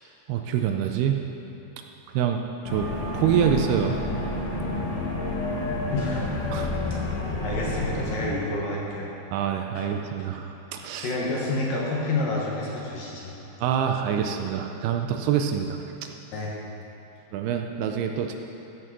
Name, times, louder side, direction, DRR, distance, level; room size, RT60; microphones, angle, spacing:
voice 1, 0.3-1.2 2.1-2.4 2.7-2.9 3.1-4.0 6.5-6.7 9.3-11.2 13.6-15.8 17.3-18.4, right 8 dB, 80° right, 4 dB, 2.5 m, -25 dB
sound 1, 2.7-8.3, left 2 dB, 80° left, 4.1 m, -29 dB
voice 2, 5.9-6.7 7.4-9.1 9.7-9.9 11.0-13.3 16.3-16.5, left 2 dB, 65° left, -4 dB, 2.6 m, -29 dB
13.5 x 6.2 x 6.1 m, 2.9 s
omnidirectional pair, 4.8 m